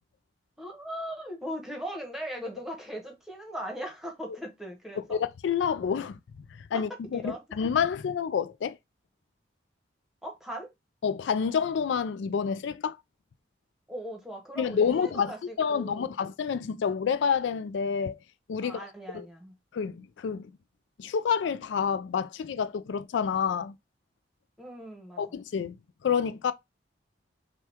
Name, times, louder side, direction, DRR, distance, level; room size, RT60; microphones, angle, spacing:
voice 1, 0.6-5.2 6.7-7.4 10.2-10.7 13.9-16.1 18.6-19.5 24.6-25.2, equal, ahead, 1.1 m, -39 dB
voice 2, 5.1-6.2 6.6-8.8 11.0-13.0 14.6-15.3 15.6-18.2 18.5-18.8 19.1-19.3 19.7-20.5 21.0-23.8 25.2-25.7 26.0-26.5, left 6 dB, 80° left, 0.3 m, -28 dB
5.7 x 2.3 x 3.4 m
head